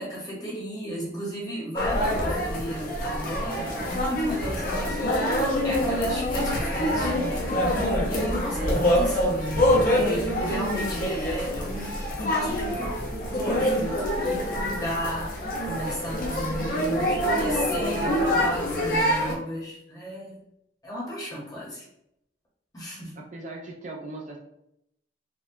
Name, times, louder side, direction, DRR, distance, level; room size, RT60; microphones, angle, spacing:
voice 1, 0.0-13.0 13.3-20.4 20.8-21.9 22.7-23.1, equal, 20° left, -5 dB, 1.0 m, -35 dB
sound 1, 1.7-19.3, equal, 45° left, 0.7 m, -25 dB
voice 2, 8.4-8.9 23.1-24.4, right 2 dB, 40° right, 0 dB, 0.4 m, -39 dB
4.2 x 2.3 x 2.6 m, 0.79 s
head